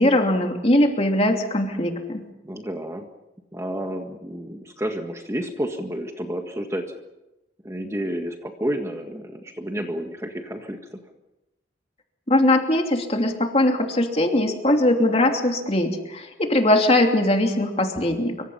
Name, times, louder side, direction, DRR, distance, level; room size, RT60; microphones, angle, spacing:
voice 1, 0.0-2.2 12.3-18.3, left 1 dB, 30° left, 3 dB, 2.9 m, -20 dB
voice 2, 2.4-3.1 3.5-6.9 7.6-11.0, equal, 15° right, 4 dB, 1.7 m, -30 dB
26.5 x 24.5 x 5.7 m, 0.97 s
head